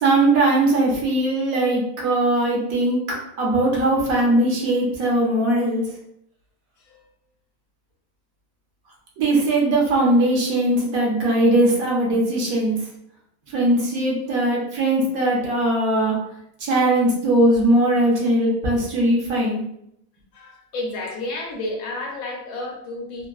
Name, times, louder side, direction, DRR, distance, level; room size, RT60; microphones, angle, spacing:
voice 1, 0.0-3.0 3.4-5.8 9.2-12.8 13.5-16.2 16.6-19.6, right 1 dB, 70° right, -2 dB, 1.2 m, -20 dB
voice 2, 6.8-7.1 20.3-23.3, left 2 dB, 75° left, 0 dB, 1.1 m, -31 dB
3.4 x 2.1 x 2.3 m, 0.76 s
omnidirectional pair, 1.6 m